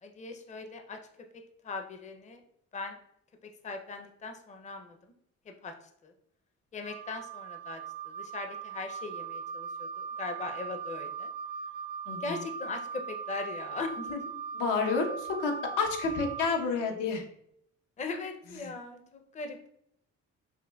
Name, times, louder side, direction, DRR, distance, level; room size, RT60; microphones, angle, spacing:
voice 1, 0.0-1.0 1.6-2.4 2.7-3.0 3.6-4.9 5.6-5.7 6.0-6.1 6.7-7.8 8.1-11.3 12.2-14.2 18.0-19.7, left 3 dB, 25° left, 5 dB, 0.5 m, -39 dB
Wind instrument woodwind instrument, 6.8-16.5, right 6 dB, 35° right, 0.4 m, -39 dB
voice 2, 12.1-12.4 14.6-17.2 18.6-18.7, left 4 dB, 85° left, 3 dB, 0.8 m, -30 dB
5.6 x 2.2 x 2.2 m, 0.70 s
cardioid pair, 90°, 30 cm